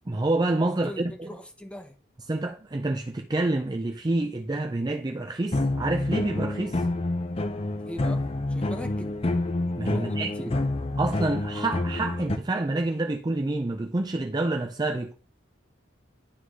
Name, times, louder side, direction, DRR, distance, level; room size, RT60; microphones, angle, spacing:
voice 1, 0.1-1.3 2.3-6.8 9.8-10.3 11.0-15.1, right 2 dB, 20° right, 0.5 m, -28 dB
voice 2, 0.8-1.9 7.8-9.1 9.9-10.5, equal, 5° left, 0.9 m, -40 dB
sound 1, 5.5-12.4, left 2 dB, 30° left, 0.6 m, -28 dB
11.0 x 3.9 x 3.1 m
head